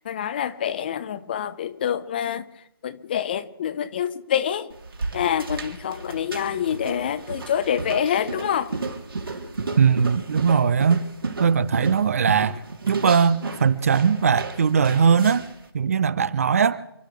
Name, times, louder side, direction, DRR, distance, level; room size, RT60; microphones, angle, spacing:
voice 1, 0.1-2.4 2.8-4.7 5.1-8.7, left 9 dB, 25° left, 0.7 m, -26 dB
sound 1, 4.7-15.6, right 3 dB, 65° right, 3.3 m, -33 dB
voice 2, 9.8-11.0 11.4-12.6 12.9-15.4 15.7-16.8, right 6 dB, 35° right, 0.7 m, -20 dB
30.0 x 13.0 x 3.5 m
figure-of-eight pair, 155°, 13 cm